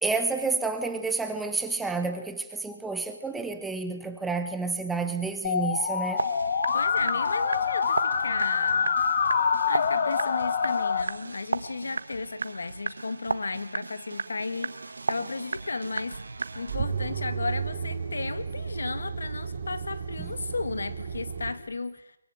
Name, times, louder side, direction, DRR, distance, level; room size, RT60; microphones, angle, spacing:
voice 1, 0.0-6.2, right 3 dB, 5° right, 8 dB, 1.2 m, -30 dB
Musical instrument, 5.4-11.0, left 6 dB, 40° left, 1.9 m, -26 dB
sound 1, 6.2-16.8, right 3 dB, 85° right, 1.6 m, -35 dB
voice 2, 6.7-9.0 9.7-16.2 16.5-22.2, left 3 dB, 80° left, 13 dB, 2.1 m, -34 dB
sound 2, 16.0-21.5, right 6 dB, 40° right, 4.3 m, -33 dB
23.0 x 22.5 x 8.9 m, 0.87 s
hypercardioid pair, 170°, 0 cm